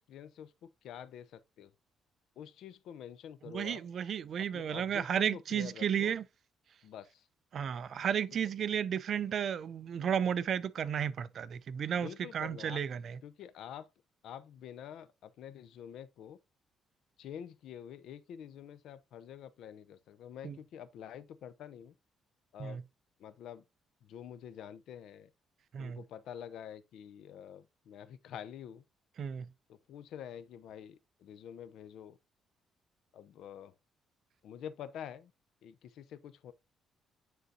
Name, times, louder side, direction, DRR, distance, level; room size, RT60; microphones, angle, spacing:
voice 1, 0.0-1.7 2.4-3.8 4.5-6.1 6.8-7.3 12.0-12.8 13.2-13.9 14.2-16.4 17.2-21.9 22.5-22.8 23.2-23.6 24.0-25.3 25.8-28.8 29.7-32.2 33.1-33.7 34.4-35.3 35.6-36.5, left 9 dB, 75° left, 0.6 m, -47 dB
voice 2, 3.5-6.2 7.5-13.2 20.4-20.6 22.6-22.8 25.7-26.0 29.2-29.5, right 8 dB, 55° right, 0.4 m, -33 dB
9.3 x 3.9 x 2.6 m
cardioid pair, 115°, 0 cm